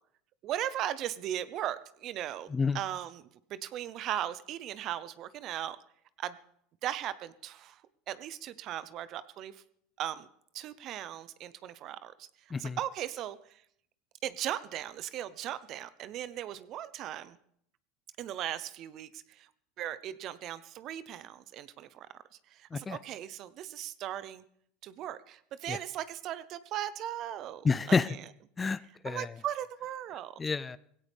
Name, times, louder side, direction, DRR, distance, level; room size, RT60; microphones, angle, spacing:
voice 1, 0.4-2.5 2.7-5.8 6.2-6.4 6.8-7.8 8.1-9.6 10.0-10.3 10.5-12.3 12.6-13.4 14.2-17.4 18.2-19.5 19.8-22.2 22.5-24.4 24.8-28.2 29.0-30.3, right 11 dB, 50° right, 15 dB, 0.8 m, -38 dB
voice 2, 27.6-28.1 28.6-29.3 30.4-30.8, left 4 dB, 20° left, 17 dB, 0.5 m, -29 dB
18.5 x 16.5 x 3.6 m, 0.67 s
hypercardioid pair, 100°, 0 cm